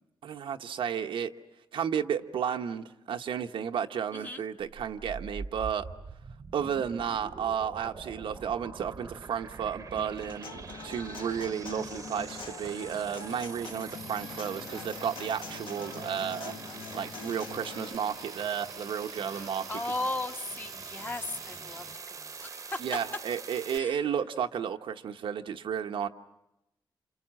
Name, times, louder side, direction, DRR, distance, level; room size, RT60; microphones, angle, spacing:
voice 1, 0.2-1.3 1.7-5.9 6.5-16.5 16.9-19.9 22.8-26.1, right 8 dB, 80° right, 6 dB, 1.0 m, -33 dB
voice 2, 4.1-4.4 19.3-21.9 22.1-22.8 23.7-24.0, left 2 dB, 20° left, 5 dB, 1.3 m, -36 dB
sound 1, 4.6-23.8, right 5 dB, 40° right, 1.0 m, -44 dB
Human voice / Acoustic guitar, 10.0-18.0, left 5 dB, 70° left, 1.8 m, -44 dB
Guitar, 13.9-21.9, equal, ahead, 1.1 m, -52 dB
28.0 x 28.0 x 7.5 m, 0.91 s
wide cardioid pair, 145°, 9 cm